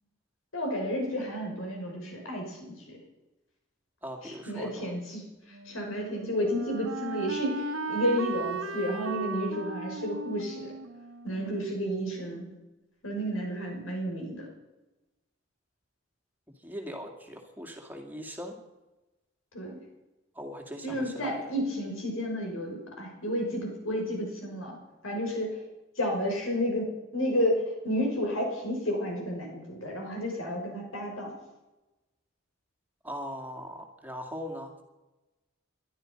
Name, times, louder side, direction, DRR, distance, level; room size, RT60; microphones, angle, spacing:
voice 1, 0.5-3.0 4.2-10.7 11.2-12.4 13.0-14.5 19.5-19.8 20.8-24.8 25.0-25.6 26.0-31.3, equal, 90° left, 1 dB, 5.8 m, -31 dB
voice 2, 4.0-4.8 16.6-18.5 20.4-21.5 33.0-34.8, equal, 10° right, 3 dB, 2.3 m, -40 dB
Wind instrument woodwind instrument, 5.5-12.3, right 3 dB, 90° right, 1.2 m, -37 dB
20.5 x 12.5 x 5.4 m, 1.0 s
head